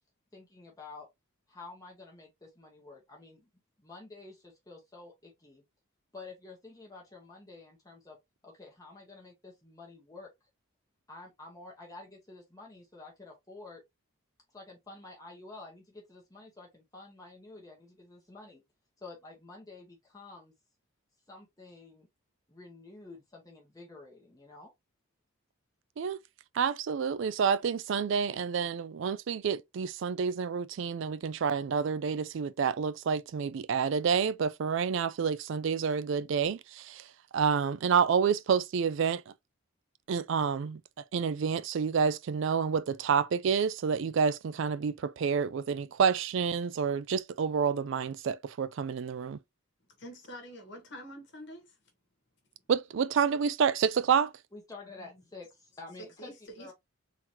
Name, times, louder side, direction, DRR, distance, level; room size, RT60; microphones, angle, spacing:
voice 1, 0.3-1.1 1.5-3.5 3.8-5.6 6.1-8.2 8.4-10.3 11.1-13.8 14.5-18.6 19.0-20.5 21.3-22.1 22.5-24.7 54.5-56.3 56.6-56.7, left 3 dB, 15° left, 1.0 m, -49 dB
voice 2, 26.6-37.0 37.3-39.2 40.1-40.8 41.1-49.4 52.7-54.3, right 6 dB, 55° right, 0.3 m, -28 dB
voice 3, 50.0-51.8 54.9-55.1 56.0-56.7, equal, 50° left, 1.3 m, -46 dB
3.8 x 2.9 x 2.9 m
head